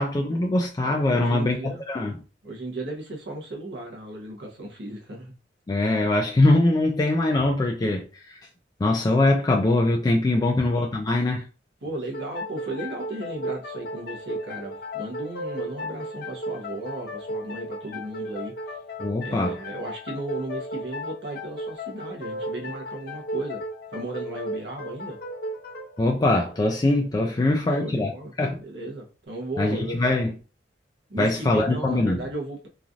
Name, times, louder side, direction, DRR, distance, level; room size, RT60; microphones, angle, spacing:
voice 1, 0.0-2.2 5.7-8.4 8.8-11.5 19.0-19.6 26.0-28.1 28.4-28.6 29.6-30.3 31.2-32.2, left 2 dB, 20° left, 0.3 m, -22 dB
voice 2, 1.1-1.8 2.4-5.3 10.3-10.6 11.8-18.5 19.2-23.6 23.9-25.2 27.2-28.3 28.6-30.0 31.1-32.7, right 2 dB, 85° right, 0.9 m, -35 dB
sound 1, 12.1-27.5, equal, 60° left, 0.6 m, -35 dB
3.1 x 2.5 x 2.4 m
head